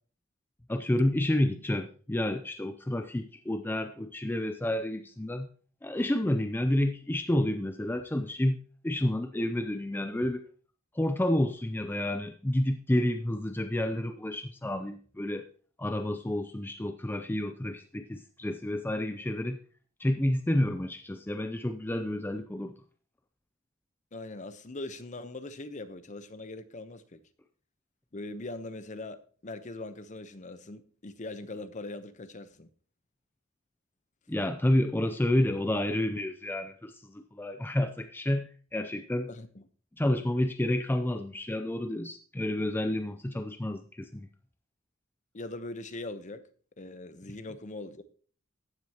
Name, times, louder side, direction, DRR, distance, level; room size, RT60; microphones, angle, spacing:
voice 1, 0.7-5.5 5.8-10.5 10.9-15.5 15.8-19.6 20.0-22.7 34.3-39.3 40.0-44.3, left 1 dB, 10° left, 0.5 m, -30 dB
voice 2, 24.1-27.2 28.1-32.7 39.3-39.6 45.3-46.4 46.8-48.0, left 2 dB, 40° left, 0.9 m, -41 dB
14.5 x 9.4 x 2.9 m
head